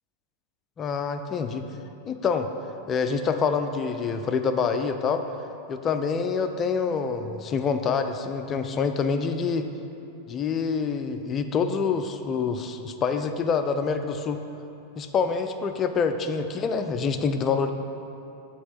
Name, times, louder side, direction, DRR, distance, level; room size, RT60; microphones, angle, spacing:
voice 1, 0.8-1.6 2.1-2.5 2.9-5.3 5.7-9.7 10.3-14.4 15.0-17.7, left 5 dB, 25° left, 7 dB, 0.3 m, -26 dB
7.8 x 2.9 x 5.6 m, 2.8 s
figure-of-eight pair, 90°, 0 cm